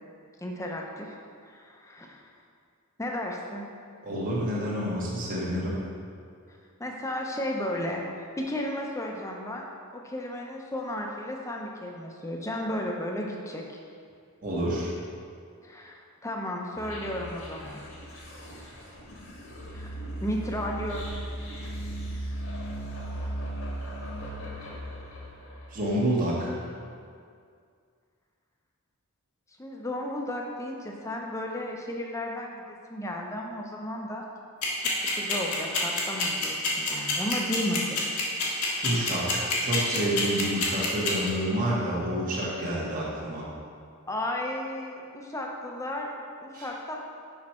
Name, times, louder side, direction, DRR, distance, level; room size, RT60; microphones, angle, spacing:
voice 1, 0.4-1.2 1.4-2.2 3.0-3.6 6.8-13.8 15.6-17.8 19.7-21.0 29.6-34.2 35.1-38.0 38.7-38.8 44.1-46.1 46.4-47.0, left 1 dB, 15° left, 0 dB, 0.6 m, -34 dB
voice 2, 4.0-5.8 14.4-14.9 25.7-26.5 38.8-43.5 46.5-46.7, right 1 dB, 35° right, -5 dB, 1.2 m, -28 dB
sound 1, 16.8-26.0, right 1 dB, 70° left, 1.4 m, -37 dB
sound 2, 34.6-41.3, left 5 dB, 90° left, 1.4 m, -26 dB
6.2 x 5.4 x 4.3 m, 2.3 s
head